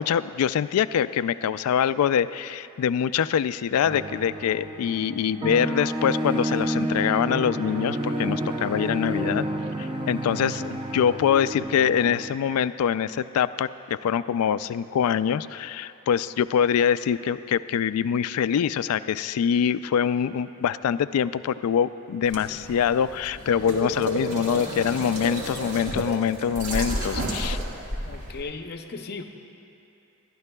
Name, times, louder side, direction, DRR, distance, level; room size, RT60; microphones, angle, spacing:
voice 1, 0.0-9.5 9.8-27.6, left 8 dB, 85° left, 15 dB, 0.3 m, -24 dB
sound 1, 3.8-12.4, right 1 dB, 25° right, 0.5 m, -30 dB
sound 2, 22.2-28.4, equal, 75° right, 1.7 m, -31 dB
voice 2, 28.0-29.2, left 4 dB, 45° left, 6 dB, 0.6 m, -36 dB
21.5 x 12.0 x 2.3 m, 2.8 s
head